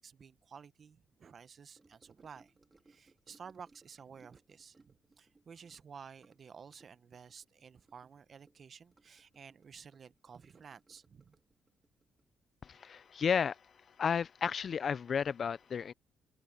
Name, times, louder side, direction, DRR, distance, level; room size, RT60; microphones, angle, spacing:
voice 1, 0.0-2.5 2.9-11.4, right 6 dB, 50° right, 1.0 m, -53 dB
Gurgling / Sink (filling or washing) / Trickle dribble, 1.8-13.4 13.7-14.0 14.3-14.4, right 3 dB, 25° right, 4.1 m, -68 dB
voice 2, 12.6-13.6 14.0-15.9, left 6 dB, 50° left, 0.6 m, -32 dB
cardioid pair, 90°, 0 cm